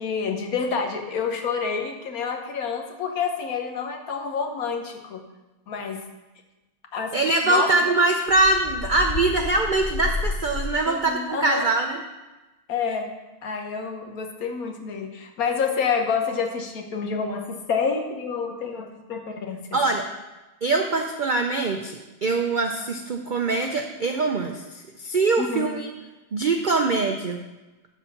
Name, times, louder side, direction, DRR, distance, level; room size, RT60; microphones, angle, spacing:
voice 1, 0.0-5.2 5.7-6.0 6.9-7.2 7.4-7.7 10.9-11.7 12.7-13.1 13.4-19.6 25.4-25.7, left 5 dB, 65° left, 4 dB, 1.4 m, -28 dB
voice 2, 7.1-12.0 19.7-20.0 20.6-25.9 26.3-27.4, right 3 dB, 80° right, 4 dB, 0.4 m, -23 dB
sound 1, 8.3-11.1, left 3 dB, 85° left, 0.4 m, -31 dB
12.0 x 4.0 x 5.9 m, 1.1 s
omnidirectional pair, 1.7 m